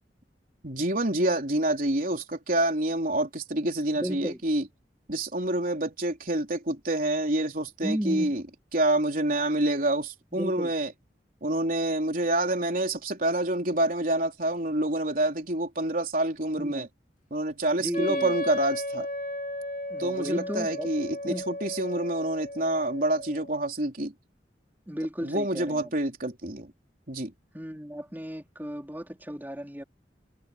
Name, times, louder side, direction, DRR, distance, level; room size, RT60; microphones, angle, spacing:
voice 1, 0.6-4.7 5.1-8.4 8.7-10.9 11.4-16.9 17.3-19.1 20.0-24.1 25.2-26.7 27.1-27.3, right 1 dB, 50° right, 3.6 m, -27 dB
voice 2, 4.0-4.4 7.8-8.4 10.3-10.7 16.6-16.9 17.8-18.3 19.9-20.9 21.3-21.5 24.9-25.9 27.5-29.8, equal, 10° right, 3.5 m, -34 dB
Wind instrument woodwind instrument, 17.9-23.6, left 1 dB, 45° left, 2.4 m, -35 dB
head